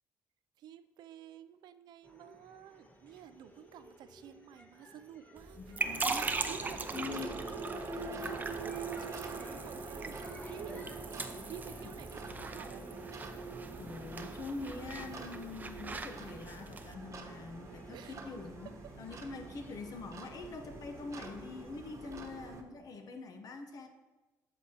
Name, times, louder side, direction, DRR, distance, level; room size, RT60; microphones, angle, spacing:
voice 1, 0.6-5.6 6.4-6.8 7.5-10.2 10.4-10.9 11.3-12.8 17.9-18.1, right 10 dB, 75° right, 12 dB, 0.4 m, -51 dB
sound 1, 2.0-21.8, equal, 25° left, 1.4 m, -57 dB
sound 2, 5.4-16.9, right 3 dB, 25° right, 0.6 m, -41 dB
voice 2, 5.6-6.3 6.9-7.3 11.8-11.9 13.8-18.7 19.0-23.9, left 4 dB, 60° left, 6 dB, 1.0 m, -44 dB
sound 3, 5.8-22.6, right 3 dB, 45° right, 1.1 m, -44 dB
8.0 x 8.0 x 2.9 m, 1.1 s
cardioid pair, 85°, 7 cm